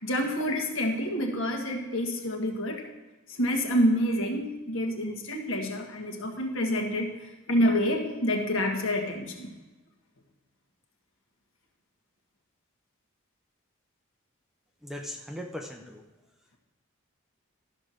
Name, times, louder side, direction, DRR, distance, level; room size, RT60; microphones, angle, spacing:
voice 1, 0.0-2.8 3.3-9.5, equal, 65° left, 2 dB, 1.6 m, -28 dB
voice 2, 14.8-16.0, left 1 dB, ahead, 2 dB, 0.7 m, -39 dB
12.5 x 5.1 x 6.3 m, 1.1 s
head